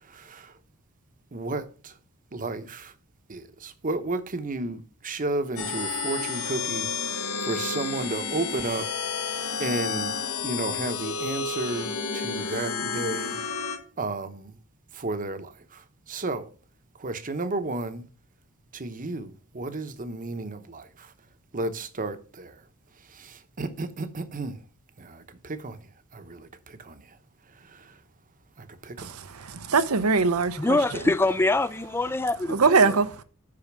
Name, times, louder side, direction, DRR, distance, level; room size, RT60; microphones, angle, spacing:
voice 1, 0.0-0.6 1.3-1.9 2.3-2.9 3.3-8.9 9.6-10.1 10.4-13.7 14.0-14.6 14.9-16.5 16.9-18.1 18.7-21.1 21.5-22.6 23.1-24.6 25.0-25.8 26.1-27.2 27.6-28.0 28.6-29.5, right 2 dB, 40° right, 0.9 m, -33 dB
sound 1, 5.6-13.8, left 5 dB, 90° left, 1.9 m, -31 dB
voice 2, 29.0-30.8 32.5-33.2, right 4 dB, 85° right, 0.8 m, -22 dB
voice 3, 30.6-33.0, left 2 dB, 10° left, 0.3 m, -24 dB
8.6 x 5.7 x 6.1 m
head